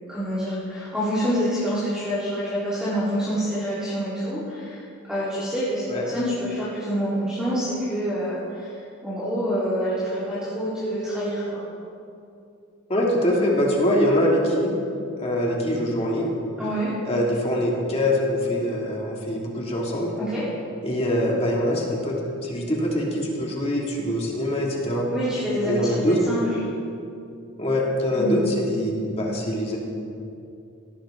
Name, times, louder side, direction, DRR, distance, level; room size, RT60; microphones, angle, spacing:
voice 1, 0.1-11.6 13.4-13.5 16.6-16.9 20.2-20.4 25.1-26.0 26.3-26.4 28.1-28.4, equal, 5° right, -13 dB, 3.9 m, -27 dB
voice 2, 12.9-14.7 15.2-16.3 17.1-20.1 20.8-25.1 25.6-26.2 27.6-29.8, left 1 dB, 30° left, -3 dB, 2.7 m, -23 dB
19.0 x 17.0 x 3.9 m, 2.6 s
head